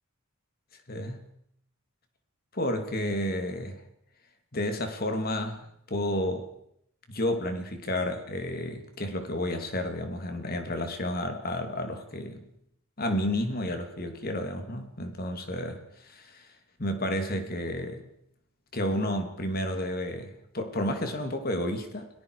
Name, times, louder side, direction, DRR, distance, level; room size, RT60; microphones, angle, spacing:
voice 1, 0.9-1.3 2.5-3.8 4.5-6.5 7.1-12.4 13.0-16.5 16.8-18.0 18.7-22.1, left 1 dB, 40° left, 6 dB, 2.6 m, -31 dB
29.5 x 18.5 x 4.9 m, 0.72 s
head